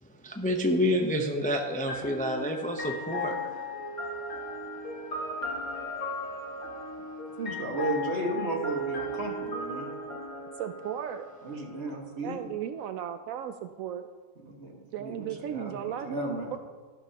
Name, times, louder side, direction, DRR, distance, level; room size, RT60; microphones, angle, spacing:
voice 1, 0.0-3.6, equal, 10° left, 3 dB, 0.5 m, -29 dB
sound 1, 1.9-11.7, left 1 dB, 85° left, 2.5 m, -36 dB
voice 2, 7.4-9.9 11.4-12.5 14.4-16.6, right 2 dB, 50° right, 1 dB, 1.8 m, -34 dB
voice 3, 10.6-11.3 12.2-14.1 14.9-16.2 16.5-16.6, right 9 dB, 75° right, 8 dB, 1.0 m, -35 dB
13.5 x 12.0 x 2.9 m, 1.5 s
omnidirectional pair, 1.5 m